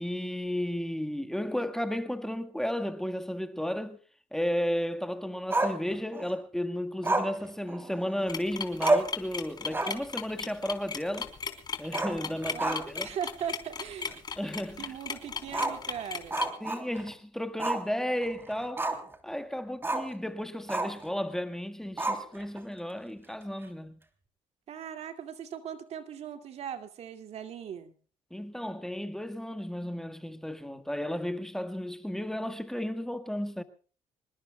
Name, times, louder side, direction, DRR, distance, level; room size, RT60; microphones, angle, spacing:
voice 1, 0.0-4.0 4.3-11.3 11.8-13.1 14.4-14.9 16.6-18.9 19.2-24.0 28.3-33.6, equal, 5° left, 1.6 m, -33 dB
Growling, 5.5-6.3 7.0-8.3 8.5-8.6 8.8-9.2 9.6-10.1 10.4-10.5 11.8-13.1 13.4-13.5 14.1-14.2 15.5-17.1 17.6-17.9 18.2-19.2 19.8-20.1 20.7-21.1 22.0-22.6, right 2 dB, 20° right, 3.1 m, -30 dB
sound 1, 8.3-16.5, left 6 dB, 35° left, 3.5 m, -35 dB
voice 2, 12.5-14.2 14.8-16.4 24.7-27.9, right 8 dB, 60° right, 2.3 m, -39 dB
26.5 x 20.5 x 2.3 m
cardioid pair, 95°, 12 cm